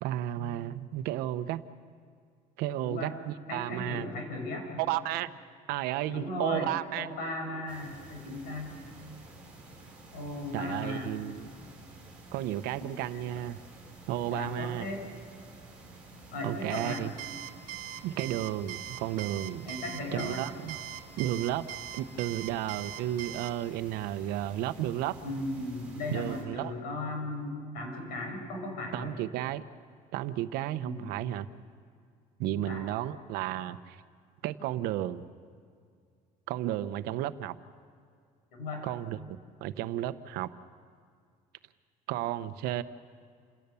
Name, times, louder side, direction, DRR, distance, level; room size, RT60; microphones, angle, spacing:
voice 1, 0.0-1.6 2.6-4.1 4.8-5.3 5.7-7.1 10.5-11.5 12.3-13.6 14.1-14.9 16.4-17.1 18.0-19.7 20.1-20.8 21.2-25.2 26.1-26.8 28.9-29.6 30.1-31.5 32.4-34.0 34.4-35.2 36.5-37.6 38.8-39.2 39.6-40.5 42.1-42.8, right 13 dB, 80° right, 13 dB, 0.9 m, -33 dB
voice 2, 2.8-3.1 3.5-4.8 6.1-6.7 7.0-8.7 10.1-11.1 12.8-12.9 14.3-15.0 16.3-17.0 19.6-20.4 25.2-29.1 30.8-31.1 32.5-32.8 38.5-38.8, left 2 dB, 70° left, 2 dB, 6.4 m, -36 dB
sound 1, 7.7-26.4, right 2 dB, 5° right, 5.1 m, -51 dB
Alarm, 16.7-23.5, right 12 dB, 65° right, 1.4 m, -41 dB
28.0 x 17.5 x 7.0 m, 2.2 s
cardioid pair, 175°, 16 cm